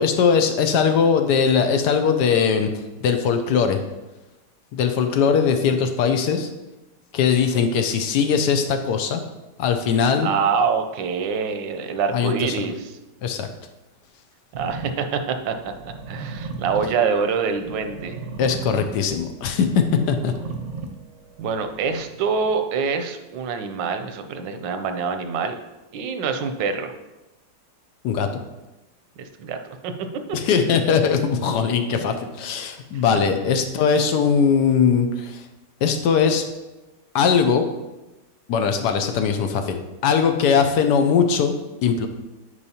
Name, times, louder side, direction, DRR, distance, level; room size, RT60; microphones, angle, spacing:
voice 1, 0.0-2.7 3.0-3.8 4.7-6.5 7.1-9.2 9.6-10.3 12.1-12.7 13.2-13.5 18.4-20.3 28.0-28.3 30.3-35.4 35.8-36.4 37.1-37.7 38.5-41.5 41.8-42.1, left 6 dB, 75° left, 7 dB, 1.2 m, -20 dB
voice 2, 10.2-13.0 14.6-18.2 21.4-25.6 25.9-26.9 29.2-29.6 29.8-29.9 30.3-30.4, right 5 dB, 85° right, 7 dB, 1.3 m, -25 dB
sound 1, 14.5-22.5, right 4 dB, 55° right, 0.8 m, -36 dB
9.7 x 4.8 x 2.8 m, 1.0 s
omnidirectional pair, 1.9 m